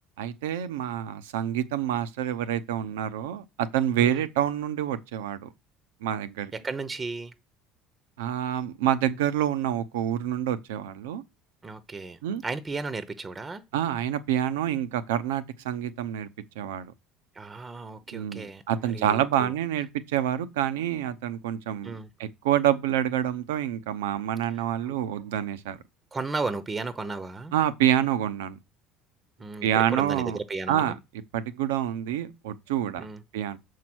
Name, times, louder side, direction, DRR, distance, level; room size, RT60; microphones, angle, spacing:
voice 1, 0.2-5.5 6.0-6.5 8.2-11.2 12.2-12.4 13.7-16.3 16.6-16.9 18.1-21.9 22.2-25.8 27.5-28.6 29.6-30.4 30.7-31.0 31.3-33.1 33.3-33.6, right 10 dB, 85° right, 0.8 m, -27 dB
voice 2, 6.5-7.3 11.6-13.6 17.3-19.5 21.8-22.1 24.8-25.0 26.1-27.5 29.4-31.0 33.0-33.2, right 3 dB, 25° right, 0.8 m, -34 dB
6.9 x 4.7 x 6.1 m
hypercardioid pair, 75°, 0 cm